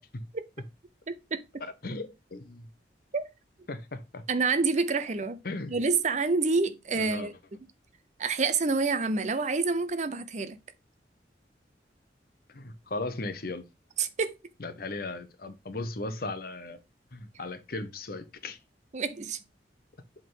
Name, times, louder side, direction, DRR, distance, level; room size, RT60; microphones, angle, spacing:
voice 1, 1.6-2.7 3.7-4.2 5.4-5.8 7.0-7.3 12.5-13.6 14.6-16.8 17.1-18.6, left 2 dB, 55° left, 0.8 m, -37 dB
voice 2, 4.3-5.4 5.7-7.3 8.2-10.6 14.0-14.4 18.9-19.4, right 4 dB, 40° right, 0.6 m, -27 dB
7.8 x 3.7 x 3.8 m
head